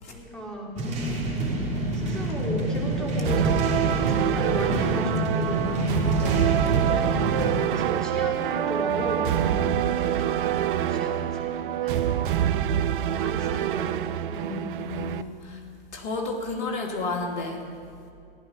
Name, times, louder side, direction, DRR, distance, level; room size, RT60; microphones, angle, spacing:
voice 1, 0.0-0.8 1.9-5.7 6.7-10.4 10.7-12.1 13.0-14.6, equal, ahead, -3 dB, 2.9 m, -35 dB
sound 1, 0.8-7.5, right 1 dB, 20° right, 3.3 m, -27 dB
sound 2, 3.2-15.2, right 10 dB, 55° right, 0.6 m, -26 dB
voice 2, 5.6-6.6 9.4-9.9 14.4-15.6 15.9-17.6, left 3 dB, 50° left, 2 dB, 2.6 m, -33 dB
15.0 x 11.0 x 5.8 m, 2.4 s
hypercardioid pair, 110°, 30 cm